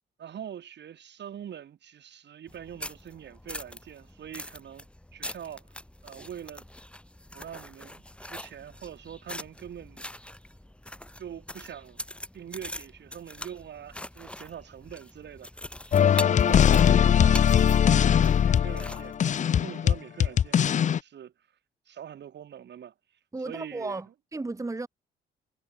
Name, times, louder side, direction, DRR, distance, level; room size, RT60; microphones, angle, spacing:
voice 1, 0.2-4.9 5.1-5.7 6.0-6.6 7.3-10.1 11.2-12.0 12.3-15.5 15.8-21.3 21.9-22.9 23.4-24.1, right 9 dB, 60° right, 3.4 m, -44 dB
sound 1, 2.5-19.1, left 1 dB, 5° left, 4.5 m, -43 dB
sound 2, 15.9-21.0, left 8 dB, 40° left, 0.5 m, -21 dB
voice 2, 23.3-24.0 24.3-24.9, right 3 dB, 15° right, 1.4 m, -33 dB
cardioid pair, 90°, 20 cm